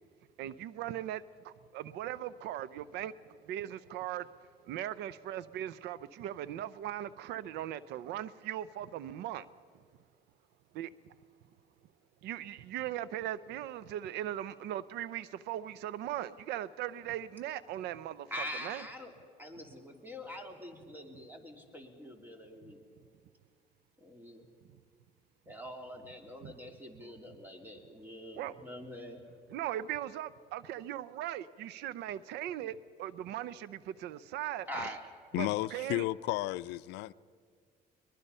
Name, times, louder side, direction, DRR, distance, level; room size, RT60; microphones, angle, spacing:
voice 1, 0.4-4.3 4.6-9.5 10.7-10.9 12.2-18.8 26.4-26.5 28.4-28.5 29.5-34.9 35.3-36.0, right 12 dB, 85° right, 0.6 m, -39 dB
voice 2, 18.3-22.8 24.0-24.5 25.5-29.2 34.7-35.0, left 1 dB, 10° right, 2.8 m, -44 dB
voice 3, 35.3-37.1, left 18 dB, 90° left, 0.4 m, -33 dB
22.5 x 21.5 x 5.5 m
cardioid pair, 110°, 17 cm